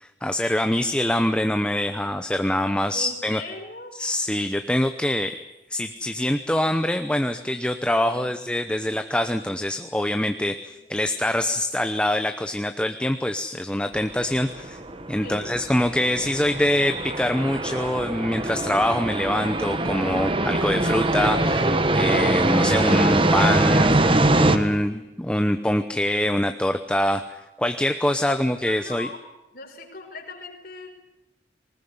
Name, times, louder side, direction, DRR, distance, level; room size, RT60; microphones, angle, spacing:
voice 1, 0.0-3.4 3.9-5.4 5.7-14.8 15.1-29.1, left 1 dB, 5° left, 8 dB, 0.8 m, -24 dB
voice 2, 2.9-3.9 8.1-8.4 15.2-15.6 28.2-29.2 29.5-30.9, left 3 dB, 55° left, 2 dB, 5.2 m, -39 dB
sound 1, 14.0-24.6, right 2 dB, 30° right, 1.5 m, -23 dB
20.0 x 20.0 x 9.6 m, 0.94 s
head